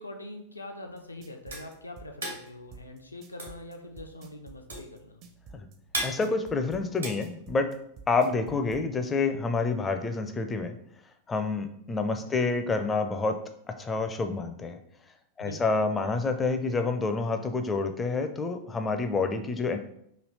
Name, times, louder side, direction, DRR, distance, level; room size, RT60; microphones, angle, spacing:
voice 1, 0.0-5.2 12.1-12.4 15.4-15.7, left 1 dB, 80° left, 4 dB, 0.5 m, -43 dB
sound 1, 0.9-8.0, right 1 dB, 75° right, 1.3 m, -38 dB
sound 2, 1.0-8.8, right 5 dB, 40° right, 0.5 m, -48 dB
voice 2, 6.0-7.7 8.1-10.7 11.3-13.4 13.8-14.8 15.4-19.8, left 3 dB, 15° left, 6 dB, 0.4 m, -28 dB
3.2 x 2.7 x 4.0 m, 0.71 s
figure-of-eight pair, 90°, 0 cm